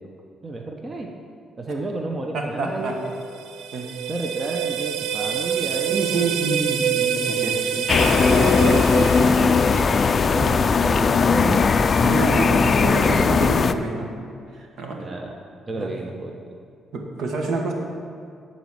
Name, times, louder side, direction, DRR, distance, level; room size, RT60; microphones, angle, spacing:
voice 1, 0.4-1.1 1.6-3.1 4.1-6.1 7.1-8.8 10.3-11.8 12.3-12.6 13.0-13.2 15.0-15.3 15.7-16.6, right 2 dB, 30° right, 1 dB, 0.8 m, -31 dB
voice 2, 2.3-3.0 3.7-3.9 5.9-7.9 9.2-9.9 10.2-10.6 12.0-14.1 14.5-15.0 15.7-15.9 16.9-17.7, right 3 dB, 70° right, 1 dB, 1.4 m, -28 dB
sound 1, 3.1-10.2, right 8 dB, 85° right, 0.4 m, -26 dB
sound 2, 7.9-13.7, left 5 dB, 40° left, 0.4 m, -18 dB
10.5 x 4.2 x 7.6 m, 2.3 s
cardioid pair, 90°, 0 cm